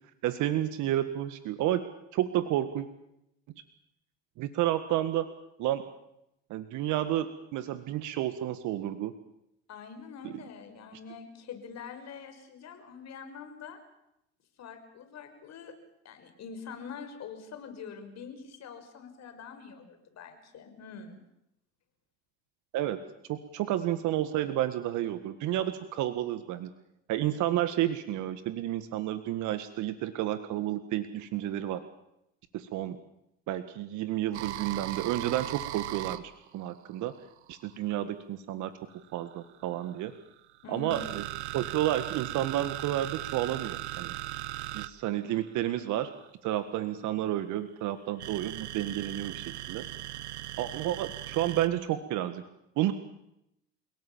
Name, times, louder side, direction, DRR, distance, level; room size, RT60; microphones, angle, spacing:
voice 1, 0.2-1.8 2.1-2.9 4.4-5.3 5.6-5.8 6.5-9.1 10.2-10.4 22.7-23.0 23.3-26.7 27.1-31.8 32.5-33.0 33.5-36.2 36.5-37.1 37.5-38.7 39.1-40.1 40.7-41.2 41.5-44.1 44.7-46.1 46.4-49.9 50.6-52.4 52.8-52.9, right 13 dB, 60° right, 11 dB, 1.7 m, -31 dB
voice 2, 9.7-13.8 14.6-15.7 16.0-21.2 40.6-41.0, left 6 dB, 50° left, 7 dB, 5.6 m, -45 dB
sound 1, 34.3-37.8 38.9-46.3 48.2-51.7, right 15 dB, 85° right, 1.0 m, -38 dB
30.0 x 18.0 x 7.3 m, 0.83 s
hypercardioid pair, 70°, 33 cm